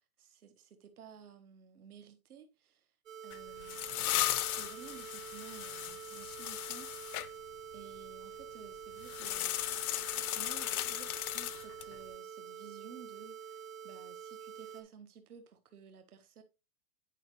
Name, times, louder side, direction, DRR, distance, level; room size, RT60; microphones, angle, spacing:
voice 1, 0.0-3.0 3.2-4.1 4.4-7.4 7.7-9.5 10.3-16.4, right 7 dB, 85° right, 1.4 m, -54 dB
sound 1, 3.1-14.8, right 7 dB, 65° right, 1.9 m, -47 dB
sound 2, 3.3-7.3 9.0-12.0, left 14 dB, 85° left, 0.6 m, -36 dB
9.9 x 5.0 x 3.1 m
hypercardioid pair, 180°, 43 cm